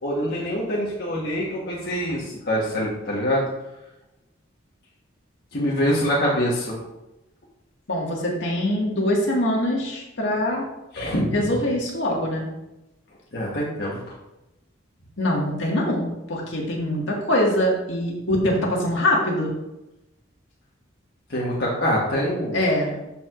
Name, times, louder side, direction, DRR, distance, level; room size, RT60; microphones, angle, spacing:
voice 1, 0.0-3.4 5.5-6.8 10.9-11.2 13.3-14.0 21.3-22.6, equal, 55° left, -5 dB, 1.3 m, -25 dB
voice 2, 7.9-10.7 11.1-12.5 15.2-19.5 22.5-23.0, left 1 dB, 70° left, -2 dB, 1.9 m, -23 dB
12.5 x 4.6 x 2.6 m, 0.94 s
head